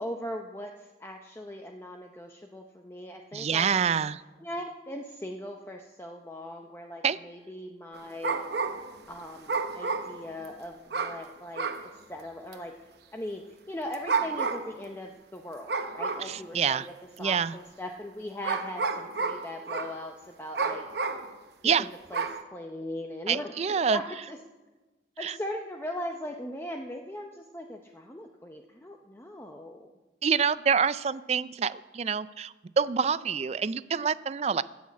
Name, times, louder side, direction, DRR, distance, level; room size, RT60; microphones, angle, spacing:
voice 1, 0.0-3.8 4.4-8.5 9.1-12.7 13.1-20.9 21.8-22.3 22.5-23.5 23.9-24.4 25.2-29.9, left 1 dB, 15° left, 2 dB, 0.6 m, -39 dB
voice 2, 3.3-4.2 7.0-7.2 16.2-16.9 17.2-17.5 21.6-21.9 23.3-24.0 25.2-25.4 30.2-34.6, right 6 dB, 35° right, 16 dB, 0.3 m, -27 dB
sound 1, 7.9-9.0 9.5-10.5 10.9-11.2 11.5-11.9 12.5-12.6 13.9-14.8 15.7-16.4 17.2-17.3 18.4-20.0 20.5-21.3 22.1-22.4, right 4 dB, 65° right, 0.9 m, -30 dB
15.5 x 6.4 x 8.4 m, 1.2 s
head